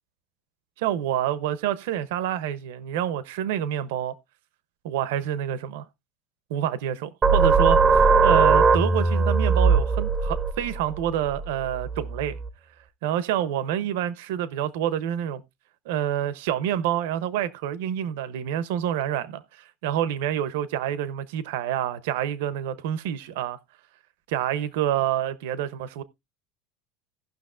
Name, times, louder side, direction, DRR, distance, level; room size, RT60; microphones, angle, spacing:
voice 1, 0.8-4.2 4.8-5.8 6.5-7.8 8.2-12.4 13.0-15.4 15.9-23.6 24.3-26.0, right 10 dB, 75° right, 0.7 m, -27 dB
sound 1, 7.2-12.5, right 4 dB, 15° right, 0.5 m, -20 dB
17.5 x 6.0 x 2.4 m
cardioid pair, 175°, 0 cm